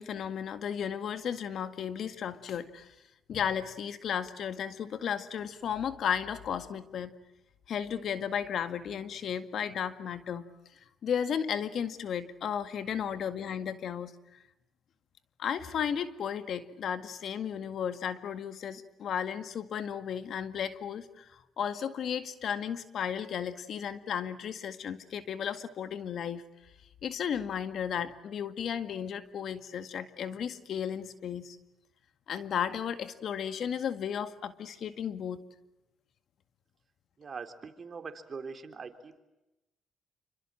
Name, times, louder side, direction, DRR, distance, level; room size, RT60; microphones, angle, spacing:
voice 1, 0.0-2.9 3.3-7.1 7.7-10.4 11.0-14.1 15.4-26.4 27.0-31.6 32.3-35.4, left 8 dB, 65° left, 11 dB, 2.0 m, -34 dB
voice 2, 37.2-39.2, right 5 dB, 40° right, 7 dB, 3.7 m, -42 dB
28.5 x 26.0 x 7.6 m, 0.96 s
cardioid pair, 90°, 0 cm